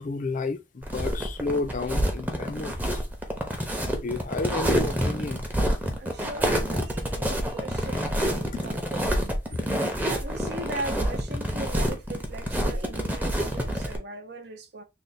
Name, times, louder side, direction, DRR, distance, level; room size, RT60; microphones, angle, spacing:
voice 1, 0.0-3.0 3.9-5.4, left 3 dB, 45° left, 0.5 m, -31 dB
sound 1, 0.8-14.0, equal, 10° right, 0.7 m, -27 dB
voice 2, 6.0-9.7 10.0-14.8, right 2 dB, 60° right, 0.7 m, -39 dB
3.3 x 2.2 x 4.0 m
head